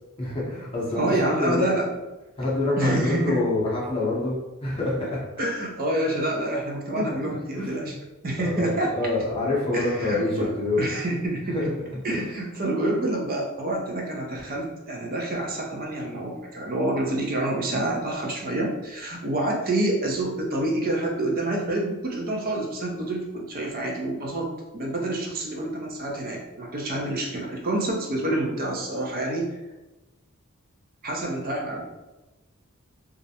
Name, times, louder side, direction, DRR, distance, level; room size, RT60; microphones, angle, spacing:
voice 1, 0.2-1.0 1.4-1.7 2.4-4.4 4.6-5.2 7.0-7.9 8.4-10.8 11.5-11.8 12.1-12.2, left 2 dB, 25° left, -6 dB, 0.7 m, -26 dB
voice 2, 0.9-1.9 2.8-3.4 5.4-7.9 8.2-8.9 9.7-11.7 12.0-24.5 24.7-29.5 31.0-31.8, right 1 dB, 40° right, -1 dB, 0.5 m, -27 dB
2.4 x 2.0 x 2.7 m, 1.1 s
head